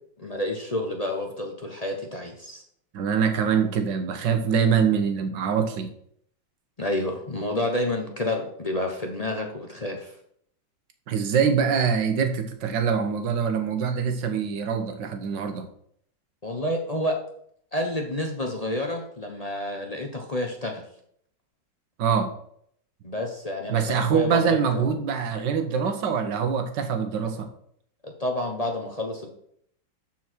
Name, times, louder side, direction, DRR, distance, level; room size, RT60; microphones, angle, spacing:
voice 1, 0.2-2.6 6.8-10.1 16.4-17.2 17.7-20.8 23.0-24.9 28.0-29.3, left 1 dB, 30° left, 2 dB, 0.7 m, -29 dB
voice 2, 2.9-5.9 11.1-15.6 22.0-22.3 23.7-27.5, right 6 dB, 65° right, 6 dB, 1.7 m, -24 dB
13.0 x 4.6 x 4.5 m, 0.67 s
omnidirectional pair, 2.2 m